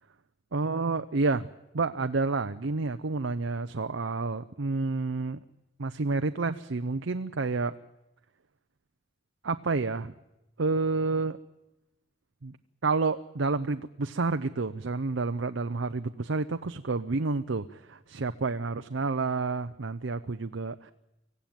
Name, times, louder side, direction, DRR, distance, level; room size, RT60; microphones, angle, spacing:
voice 1, 0.5-1.5 1.7-5.4 5.8-7.7 9.4-10.1 10.6-11.4 12.4-12.5 12.8-20.9, right 3 dB, 70° right, 9 dB, 0.7 m, -29 dB
24.5 x 16.0 x 9.2 m, 0.92 s
head